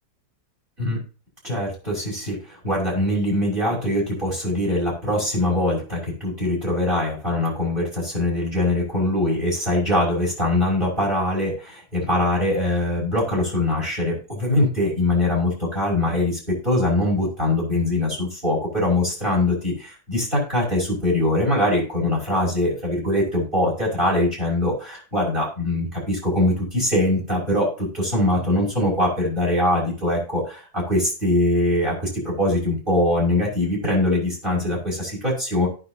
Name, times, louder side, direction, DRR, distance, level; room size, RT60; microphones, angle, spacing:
voice 1, 1.4-35.7, left 1 dB, 25° right, -2 dB, 6.5 m, -22 dB
18.0 x 6.2 x 2.8 m, 0.36 s
omnidirectional pair, 2.0 m